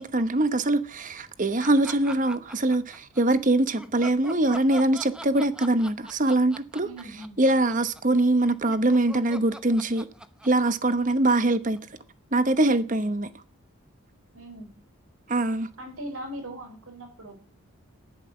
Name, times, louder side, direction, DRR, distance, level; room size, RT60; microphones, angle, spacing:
voice 1, 0.0-6.9 7.4-10.1 10.4-11.8 12.3-13.3 15.3-15.7, right 2 dB, 35° right, 1.0 m, -23 dB
sound 1, 1.6-3.2 3.7-12.0, right 1 dB, 5° right, 0.8 m, -43 dB
voice 2, 6.8-7.4 12.6-13.0 14.3-14.7 15.8-17.4, right 1 dB, 80° right, 4.8 m, -40 dB
14.5 x 11.0 x 7.0 m
head